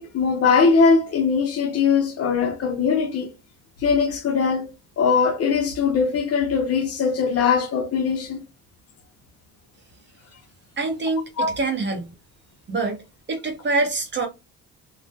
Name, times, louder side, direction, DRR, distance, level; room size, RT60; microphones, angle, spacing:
voice 1, 0.0-3.3 3.8-4.7 5.0-8.5 11.4-11.6, left 5 dB, 55° left, 0.7 m, -21 dB
voice 2, 10.8-12.1 12.7-13.0 13.3-14.3, right 3 dB, 35° right, 0.8 m, -25 dB
2.3 x 2.1 x 2.6 m
cardioid pair, 90°, 30 cm